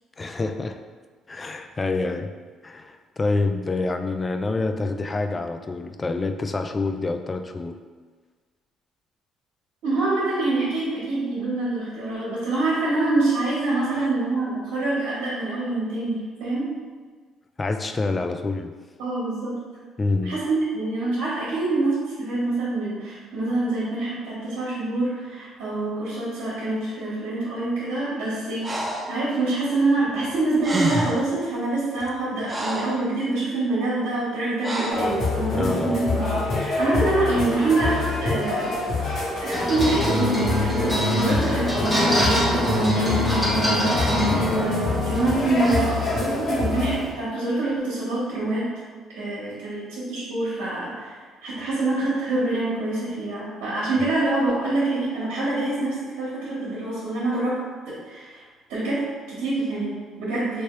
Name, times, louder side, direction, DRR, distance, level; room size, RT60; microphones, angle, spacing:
voice 1, 0.2-0.8 1.3-2.3 2.6-7.8 14.0-14.1 17.6-18.7 20.0-20.4 35.5-36.0 44.3-44.5, left 3 dB, 30° left, 7 dB, 0.3 m, -27 dB
voice 2, 9.8-16.7 19.0-19.6 20.2-28.8 29.1-38.8 39.4-48.7 49.2-58.4 58.7-60.6, right 2 dB, 80° right, -9 dB, 1.0 m, -26 dB
Breathing, 28.6-29.1 30.3-30.4 30.6-31.3 32.0-33.0 34.6-35.1, right 1 dB, 30° right, 0.6 m, -28 dB
sound 1, 34.9-47.0, left 3 dB, 60° left, 1.3 m, -26 dB
sound 2, 39.5-47.1, equal, ahead, 1.1 m, -25 dB
3.3 x 2.8 x 3.1 m, 1.5 s
supercardioid pair, 75°, 0 cm